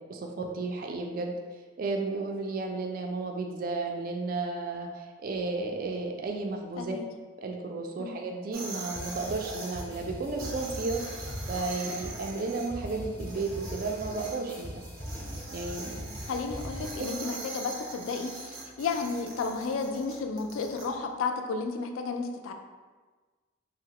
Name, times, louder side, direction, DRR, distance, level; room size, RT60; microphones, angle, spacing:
voice 1, 0.0-1.3 1.8-7.0 7.4-14.8 15.5-16.2 17.0-17.3, right 3 dB, 45° right, 2 dB, 0.3 m, -33 dB
sound 1, 8.5-9.8 10.4-12.7 13.2-14.4 15.0-20.9, right 3 dB, 90° right, 0.7 m, -42 dB
sound 2, 8.9-17.1, equal, 10° left, 0.6 m, -41 dB
voice 2, 16.3-22.5, left 4 dB, 85° left, 5 dB, 0.3 m, -32 dB
3.7 x 2.0 x 2.8 m, 1.3 s
head